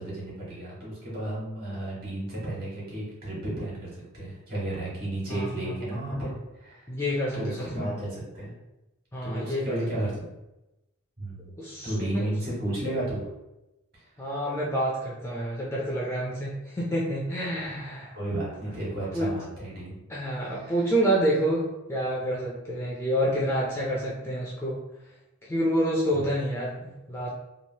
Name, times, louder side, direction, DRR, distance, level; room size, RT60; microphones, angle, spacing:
voice 1, 0.0-6.9 7.3-8.5 9.2-10.1 11.2-11.5 11.8-13.3 13.9-14.0 18.1-20.0 20.4-20.7, right 1 dB, 45° right, -6 dB, 1.5 m, -33 dB
voice 2, 6.9-7.9 9.1-9.8 11.6-12.3 14.2-18.2 18.8-19.3 20.1-24.8 25.5-27.3, equal, 10° left, -5 dB, 0.4 m, -28 dB
3.1 x 2.5 x 2.8 m, 0.95 s
head